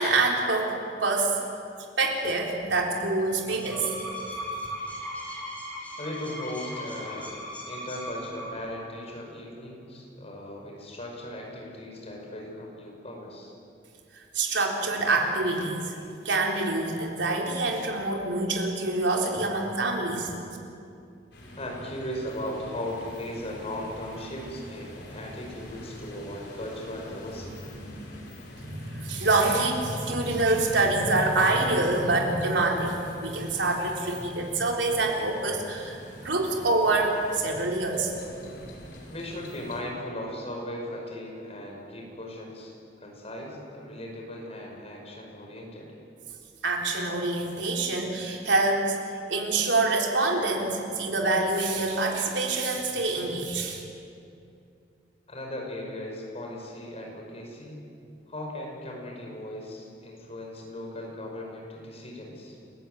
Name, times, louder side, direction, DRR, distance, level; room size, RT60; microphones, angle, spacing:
voice 1, 0.0-1.4 2.0-3.9 14.3-20.3 28.6-38.1 46.6-49.0 49.3-53.8, right 2 dB, 85° right, 0 dB, 3.8 m, -26 dB
sound 1, 3.4-8.8, equal, 10° left, 5.5 m, -37 dB
voice 2, 6.0-13.5 21.6-27.7 39.1-45.9 55.3-57.8 58.3-62.6, left 1 dB, 35° left, 0 dB, 5.7 m, -38 dB
Na Beira do Rio, 21.3-39.8, equal, 70° left, 5.3 m, -44 dB
29.0 x 15.5 x 9.3 m, 2.6 s
head